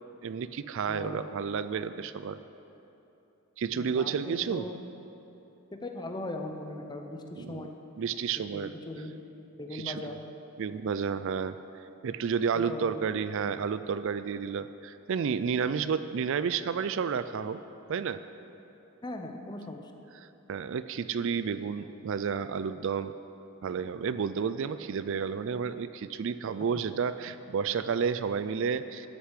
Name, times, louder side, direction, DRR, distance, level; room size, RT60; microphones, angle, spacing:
voice 1, 0.2-2.4 3.6-4.7 7.4-7.7 8.0-8.7 9.7-10.0 10.6-11.6 12.0-17.6 17.9-18.2 20.5-23.1 23.6-29.1, right 6 dB, 60° right, 13 dB, 0.4 m, -31 dB
voice 2, 0.9-1.4 3.7-4.8 5.7-7.7 8.4-9.1 9.6-10.2 12.5-13.0 19.0-19.9, left 2 dB, 20° left, 4 dB, 0.8 m, -39 dB
12.5 x 6.8 x 8.2 m, 2.9 s
head